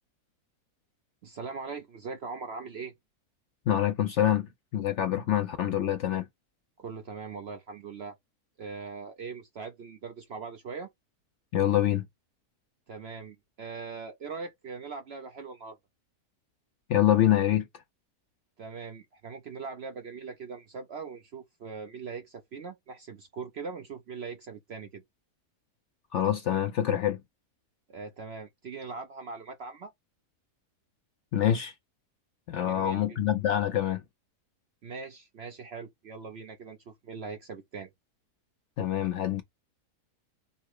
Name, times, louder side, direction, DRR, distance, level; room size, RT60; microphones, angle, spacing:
voice 1, 1.2-2.9 6.8-8.2 8.6-10.9 12.9-15.8 18.6-25.0 27.9-29.9 32.6-33.2 34.8-37.9, right 5 dB, 60° right, 0.7 m, -41 dB
voice 2, 3.7-6.3 11.5-12.0 16.9-17.7 26.1-27.2 31.3-31.7 32.5-34.0 38.8-39.4, left 11 dB, 65° left, 0.7 m, -26 dB
5.5 x 2.1 x 4.6 m
omnidirectional pair, 1.6 m